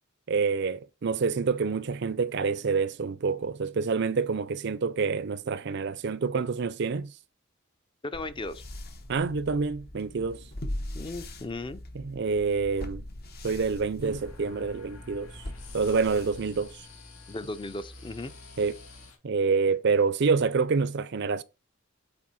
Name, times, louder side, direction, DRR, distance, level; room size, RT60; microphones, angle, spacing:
voice 1, 0.3-7.1 9.1-10.4 12.0-13.0 13.4-15.3 15.7-16.7 18.6-18.7 19.2-21.4, right 5 dB, 50° right, 0.5 m, -27 dB
voice 2, 8.0-8.6 10.9-11.8 17.3-18.3, left 2 dB, 25° left, 0.5 m, -36 dB
sound 1, 8.1-17.0, left 1 dB, 45° left, 0.9 m, -41 dB
sound 2, 14.0-19.1, left 3 dB, 80° left, 2.2 m, -48 dB
7.5 x 4.3 x 4.1 m
head